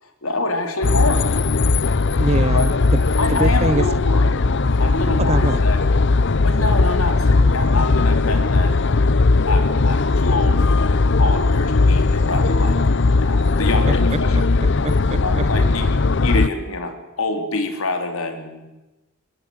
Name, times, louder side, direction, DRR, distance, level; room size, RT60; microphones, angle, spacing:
voice 1, 0.0-1.3 2.5-2.7 3.2-4.4 4.8-5.8 6.4-8.8 9.4-12.8 13.2-14.4 15.2-18.6, left 2 dB, 80° left, 6 dB, 3.8 m, -26 dB
sound 1, 0.8-16.5, left 3 dB, 55° left, 0.7 m, -18 dB
voice 2, 2.2-3.0 3.3-3.9 5.2-5.6 13.9-14.0 14.6-15.4, right 2 dB, 30° right, 17 dB, 0.7 m, -24 dB
22.5 x 21.0 x 8.0 m, 1.0 s
head